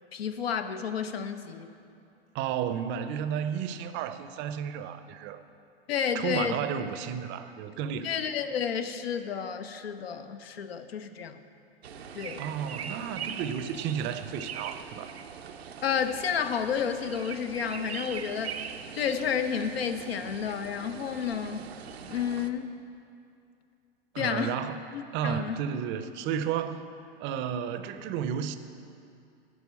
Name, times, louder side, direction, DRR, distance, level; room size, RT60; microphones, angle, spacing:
voice 1, 0.1-1.7 5.9-6.6 8.0-11.4 12.1-12.4 15.8-18.6 19.0-21.7 22.1-22.7 24.2-24.6 24.9-25.6, left 7 dB, 75° left, 9 dB, 0.7 m, -31 dB
voice 2, 2.3-5.4 6.1-8.1 12.4-15.1 24.1-24.8 25.1-26.9 27.2-28.6, right 8 dB, 40° right, 11 dB, 0.6 m, -32 dB
sound 1, 11.8-22.5, right 7 dB, 80° right, 0.7 m, -41 dB
11.0 x 4.7 x 8.1 m, 2.5 s
hypercardioid pair, 95°, 31 cm